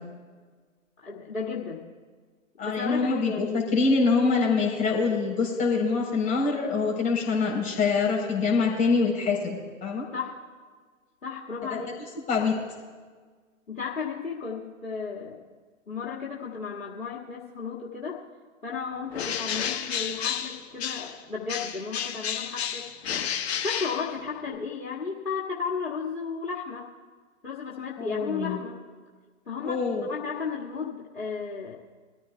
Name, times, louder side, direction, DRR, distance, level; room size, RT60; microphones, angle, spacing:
voice 1, 1.0-1.9 2.6-3.7 10.1-10.4 11.2-12.0 13.7-15.4 15.9-18.2 18.6-26.9 27.4-28.8 29.5-31.8, left 5 dB, 85° left, -5 dB, 2.0 m, -34 dB
voice 2, 2.6-10.1 11.7-11.8 12.3-12.6 28.0-28.6 29.6-30.1, left 4 dB, 20° left, -2 dB, 4.0 m, -25 dB
Bird, 19.1-21.2 21.5-24.6, left 8 dB, 55° left, 1.3 m, -31 dB
23.5 x 14.0 x 2.3 m, 1.5 s
figure-of-eight pair, 125°, 39 cm